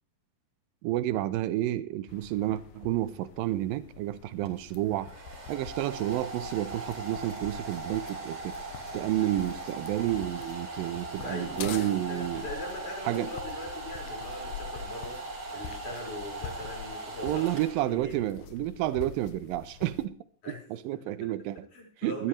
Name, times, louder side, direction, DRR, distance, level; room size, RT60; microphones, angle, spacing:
voice 1, 0.8-5.1 5.5-8.6 8.9-12.5 13.0-13.3 17.2-20.2 20.7-21.6 22.0-22.3, right 14 dB, 80° right, 2.5 m, -30 dB
Men shoes - walking, 2.1-20.1, left 9 dB, 80° left, 2.8 m, -46 dB
Domestic sounds home sounds, 4.4-18.2, right 2 dB, 40° right, 3.1 m, -40 dB
voice 2, 11.2-17.5 17.9-18.2 20.4-20.6 20.9-21.3 21.7-22.3, left 1 dB, 55° left, 6.6 m, -41 dB
18.0 x 13.5 x 3.2 m
omnidirectional pair, 4.3 m